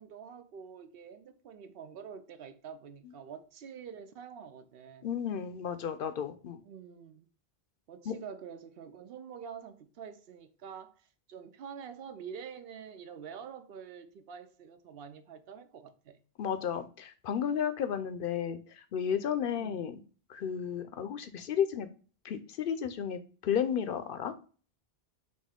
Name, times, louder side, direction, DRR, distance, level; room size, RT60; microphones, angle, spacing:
voice 1, 0.0-5.1 6.6-7.3 7.9-16.2 19.6-19.8, right 7 dB, 70° right, 0.8 m, -47 dB
voice 2, 5.0-6.6 8.1-8.2 16.4-20.0 20.3-21.9 22.2-24.3, left 8 dB, 65° left, 0.7 m, -33 dB
4.2 x 3.2 x 3.5 m
omnidirectional pair, 1.0 m